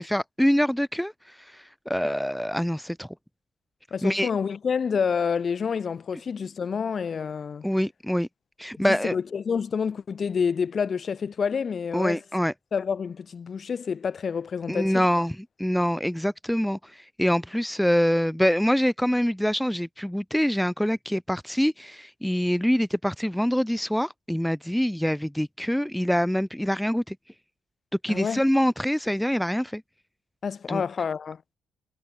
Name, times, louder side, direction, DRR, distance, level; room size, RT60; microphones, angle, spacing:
voice 1, 0.0-3.1 4.0-4.3 7.6-8.3 8.6-9.1 11.9-12.5 14.7-27.2 28.0-29.8 30.7-30.8, equal, ahead, 1.0 m, -25 dB
voice 2, 3.9-7.6 8.8-12.2 12.7-15.1 28.1-28.4 30.4-31.4, left 6 dB, 45° left, 2.8 m, -28 dB
cardioid pair, 90°, 0 cm